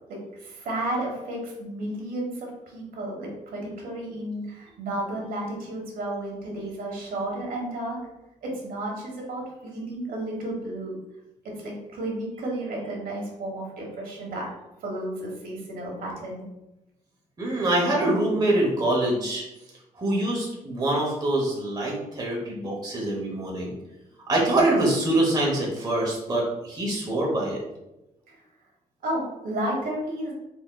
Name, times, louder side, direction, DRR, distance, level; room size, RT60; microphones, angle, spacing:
voice 1, 0.1-8.0 8.4-10.9 11.4-14.5 14.8-16.5 28.3-28.4 29.0-30.3, right 1 dB, 80° right, -1 dB, 1.1 m, -32 dB
voice 2, 17.4-19.4 19.9-23.7 24.3-27.6, right 1 dB, 25° right, -3 dB, 0.9 m, -24 dB
4.0 x 3.6 x 2.2 m, 0.93 s
wide cardioid pair, 150°, 15 cm